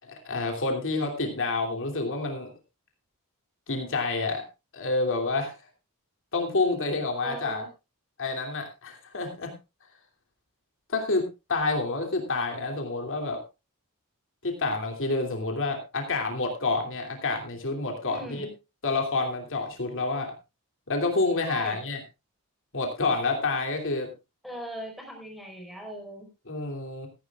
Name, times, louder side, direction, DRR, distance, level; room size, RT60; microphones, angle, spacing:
voice 1, 0.0-2.5 3.7-4.4 4.7-5.5 6.3-7.6 8.2-9.5 10.9-13.4 14.4-18.5 18.8-20.3 20.9-22.0 22.7-24.1 26.5-27.1, left 3 dB, 60° left, 2 dB, 2.9 m, -28 dB
voice 2, 7.2-7.7 18.0-18.5 21.4-21.8 24.4-26.3, equal, ahead, 2 dB, 4.7 m, -39 dB
16.5 x 14.5 x 2.4 m, 0.26 s
head